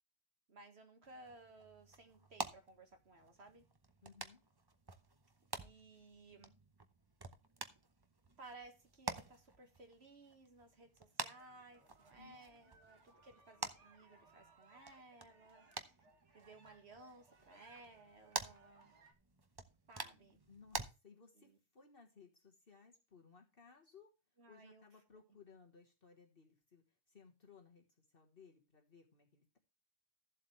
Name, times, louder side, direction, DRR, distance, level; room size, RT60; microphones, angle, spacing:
voice 1, 0.5-3.6 5.6-6.5 8.4-15.9 16.3-18.9 19.9-20.4 21.4-21.6 24.4-24.8, right 2 dB, 70° right, 2.0 m, -59 dB
sound 1, 1.0-20.9, right 3 dB, 25° right, 0.7 m, -49 dB
voice 2, 4.0-4.4 12.2-12.7 20.5-24.1 24.5-29.6, left 5 dB, 55° left, 1.7 m, -62 dB
sound 2, 11.3-19.1, right 3 dB, 85° right, 1.9 m, -67 dB
14.0 x 7.6 x 3.2 m
omnidirectional pair, 1.2 m